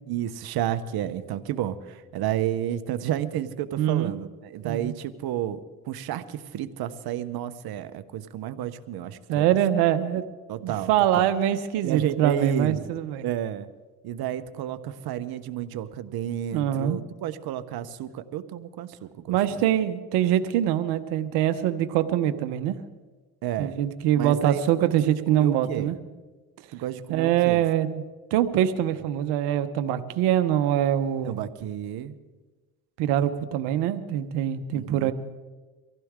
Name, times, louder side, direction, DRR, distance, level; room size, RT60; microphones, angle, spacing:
voice 1, 0.1-5.6 5.9-9.5 10.5-11.2 11.8-12.9 13.2-13.7 14.0-19.6 23.4-23.8 24.2-24.6 25.1-25.9 26.7-27.6 31.2-32.2 34.7-35.1, right 11 dB, 70° right, 12 dB, 1.1 m, -31 dB
voice 2, 3.8-4.1 4.6-4.9 9.3-10.2 10.6-13.2 16.5-17.0 19.3-22.8 23.6-26.0 27.1-28.0 28.3-31.4 33.0-35.1, right 11 dB, 90° right, 10 dB, 1.0 m, -24 dB
23.5 x 15.5 x 3.7 m, 1.3 s
supercardioid pair, 80°, 39 cm